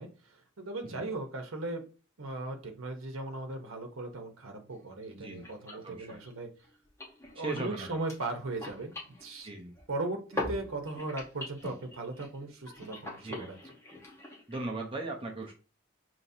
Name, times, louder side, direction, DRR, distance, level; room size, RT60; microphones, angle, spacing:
voice 1, 0.0-1.8 2.2-6.5 7.4-9.5 9.9-13.7, right 2 dB, 80° right, 4 dB, 0.9 m, -38 dB
sound 1, 4.7-4.8 5.0-5.1 5.3-10.0 10.3-14.7, left 1 dB, 15° left, 1.0 m, -43 dB
voice 2, 5.1-6.2 7.4-7.9 9.4-9.7 13.2-13.5 14.5-15.5, right 2 dB, 25° right, 1 dB, 0.7 m, -38 dB
5.7 x 3.0 x 2.7 m, 0.35 s
head